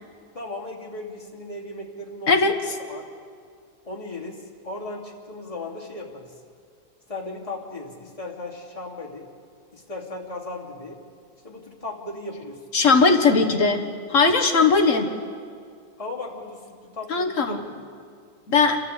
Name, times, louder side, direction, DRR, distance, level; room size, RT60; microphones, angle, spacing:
voice 1, 0.3-2.4 2.9-3.1 3.8-6.3 7.1-9.3 9.7-11.0 11.4-12.6 12.9-13.0 16.0-17.8, left 2 dB, 20° left, -3 dB, 2.8 m, -36 dB
voice 2, 12.7-13.8 14.1-15.1 17.1-17.6 18.5-18.8, left 4 dB, 45° left, 5 dB, 1.7 m, -18 dB
29.0 x 13.0 x 8.2 m, 2.1 s
omnidirectional pair, 2.0 m